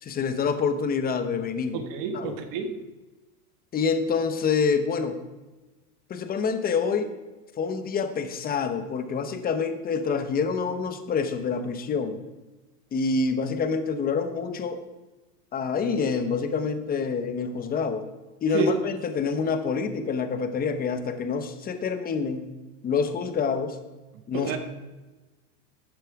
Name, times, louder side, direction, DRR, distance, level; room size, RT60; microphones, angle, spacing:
voice 1, 0.0-1.8 2.1-2.4 3.7-5.2 6.1-7.1 7.6-12.2 12.9-14.8 15.5-18.0 18.4-22.5 22.8-23.8 24.3-24.6, left 5 dB, 20° left, 9 dB, 0.9 m, -27 dB
voice 2, 1.7-2.8 18.5-18.7 24.3-24.6, right 5 dB, 45° right, 7 dB, 1.5 m, -29 dB
13.0 x 8.9 x 4.7 m, 1.2 s
supercardioid pair, 150°, 46 cm